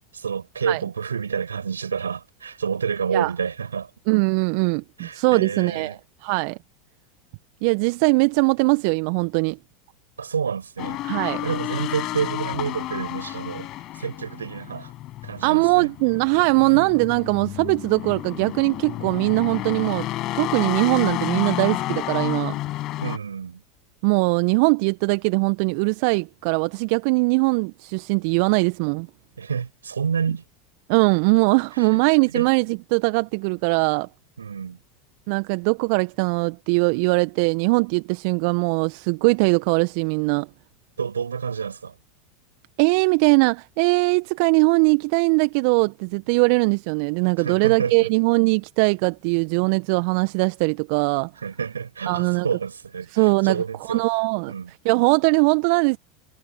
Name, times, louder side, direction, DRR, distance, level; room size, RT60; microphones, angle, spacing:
voice 1, 0.0-3.9 5.0-6.0 10.2-11.0 11.4-13.7 13.9-14.9 15.2-15.9 16.6-16.8 23.0-23.6 29.4-30.4 31.7-32.0 32.3-32.5 34.4-34.8 41.0-42.0 47.4-48.1 51.4-54.0 54.5-54.7, right 6 dB, 80° right, 7.7 m, -29 dB
voice 2, 4.1-5.9 6.2-6.6 7.6-9.6 11.0-11.4 15.4-20.1 20.3-22.5 24.0-29.1 30.9-34.1 35.3-40.5 42.8-51.3 52.1-52.5 53.1-53.6 53.9-54.5 54.8-56.0, right 32 dB, 55° right, 1.4 m, -21 dB
sound 1, 10.8-23.2, left 16 dB, 45° left, 7.3 m, -31 dB
figure-of-eight pair, 80°, 0 cm